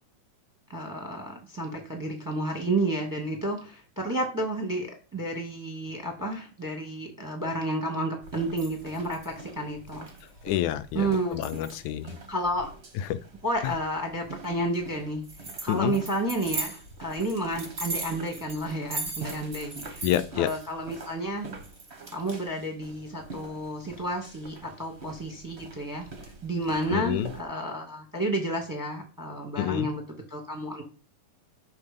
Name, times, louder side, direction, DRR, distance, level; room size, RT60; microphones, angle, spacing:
voice 1, 0.7-10.1 10.9-11.5 12.3-12.7 13.4-15.2 15.6-20.1 20.4-21.5 22.1-26.1 26.4-30.0 30.3-30.8, right 1 dB, 10° right, 3 dB, 1.5 m, -31 dB
sound 1, 8.2-27.4, right 3 dB, 35° right, 1.1 m, -41 dB
voice 2, 10.4-12.2 13.0-13.2 13.6-13.7 15.7-16.0 20.0-20.5 26.9-27.3 29.6-29.9, left 12 dB, 80° left, 12 dB, 2.0 m, -28 dB
9.6 x 6.8 x 5.3 m, 0.38 s
omnidirectional pair, 3.5 m